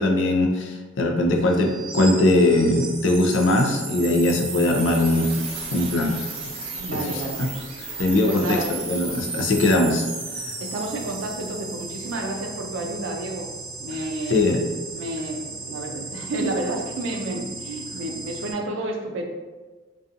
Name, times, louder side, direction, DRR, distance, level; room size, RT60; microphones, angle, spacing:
voice 1, 0.0-5.3 5.7-6.2 6.9-7.2 8.0-10.0 14.3-14.6, left 2 dB, 70° left, 3 dB, 0.4 m, -20 dB
sound 1, 1.3-18.5, right 3 dB, 30° right, 0.6 m, -35 dB
voice 2, 6.8-7.4 8.3-8.7 10.6-13.5 13.8-14.4 14.9-19.2, right 2 dB, 80° right, 3 dB, 0.4 m, -30 dB
2.6 x 2.3 x 2.5 m, 1.3 s
head